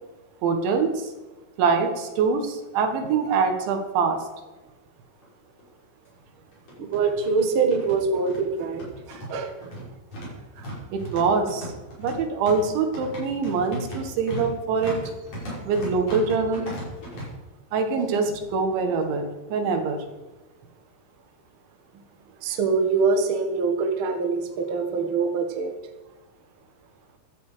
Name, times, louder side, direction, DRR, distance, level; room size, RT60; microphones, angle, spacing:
voice 1, 0.4-1.1 1.6-4.3 10.9-11.7 12.0-15.0 15.7-16.7 17.7-20.1, right 5 dB, 80° right, 5 dB, 4.0 m, -24 dB
sound 1, 5.2-5.3 5.6-5.7 6.5-17.3, equal, 35° left, 6.2 m, -37 dB
voice 2, 6.8-9.5 10.6-10.7 22.4-25.7, right 4 dB, 55° right, 3 dB, 1.5 m, -24 dB
16.0 x 12.0 x 5.1 m, 1.2 s
omnidirectional pair, 5.3 m